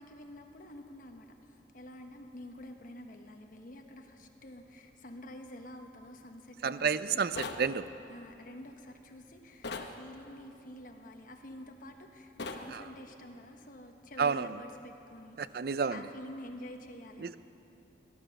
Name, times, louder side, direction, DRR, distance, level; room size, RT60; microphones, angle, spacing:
voice 1, 0.0-7.3 8.1-15.4 15.9-17.4, left 1 dB, 50° left, 4 dB, 1.2 m, -48 dB
voice 2, 6.6-7.9 12.7-12.8 14.2-14.6 15.4-16.0 17.2-17.4, right 6 dB, 55° right, 14 dB, 0.4 m, -30 dB
sound 1, 7.4-7.7 9.6-9.9 12.4-12.7, left 3 dB, 65° left, 1.0 m, -38 dB
18.5 x 11.5 x 6.5 m, 2.8 s
head